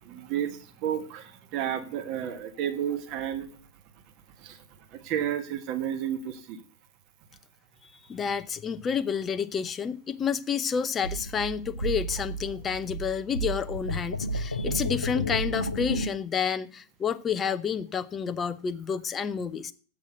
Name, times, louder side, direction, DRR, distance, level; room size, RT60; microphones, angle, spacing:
voice 1, 0.0-3.5 4.4-4.6 4.9-6.6, right 10 dB, 40° right, 1.5 m, -32 dB
voice 2, 8.1-19.7, left 7 dB, 20° left, 0.6 m, -29 dB
sound 1, 11.0-16.1, right 1 dB, 80° left, 0.7 m, -32 dB
8.3 x 6.5 x 8.1 m
figure-of-eight pair, 90°, 0 cm